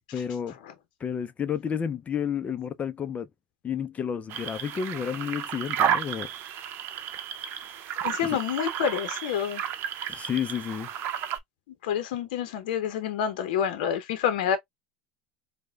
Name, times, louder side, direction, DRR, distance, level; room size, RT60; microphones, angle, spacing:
voice 1, 0.1-0.6 1.0-3.3 3.6-6.3 8.2-8.4 10.1-10.9, left 8 dB, 30° left, 0.4 m, -31 dB
sound 1, 4.3-11.4, right 9 dB, 50° right, 0.7 m, -32 dB
voice 2, 8.0-9.6 11.8-14.6, left 8 dB, 75° left, 0.6 m, -28 dB
4.7 x 2.1 x 2.2 m
hypercardioid pair, 85°, 5 cm